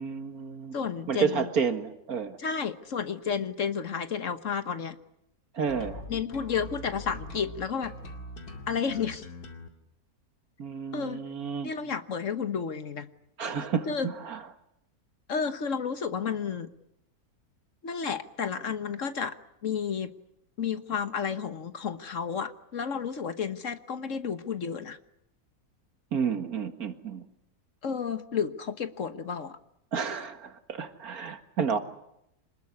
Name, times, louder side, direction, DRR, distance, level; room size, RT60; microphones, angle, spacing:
voice 1, 0.0-0.8 1.1-2.4 5.5-6.0 10.6-11.7 13.4-14.4 26.1-27.2 29.9-31.8, right 6 dB, 70° right, 8 dB, 2.2 m, -31 dB
voice 2, 0.7-1.5 2.4-5.0 6.1-7.9 8.7-9.2 10.9-11.2 11.6-13.1 13.9-14.1 15.3-16.7 17.8-19.3 19.6-20.1 20.6-25.0 27.8-29.6, left 6 dB, 55° left, 10 dB, 1.5 m, -31 dB
sound 1, 5.7-9.7, left 1 dB, 85° left, 2.8 m, -42 dB
26.5 x 20.5 x 9.7 m, 0.80 s
omnidirectional pair, 1.6 m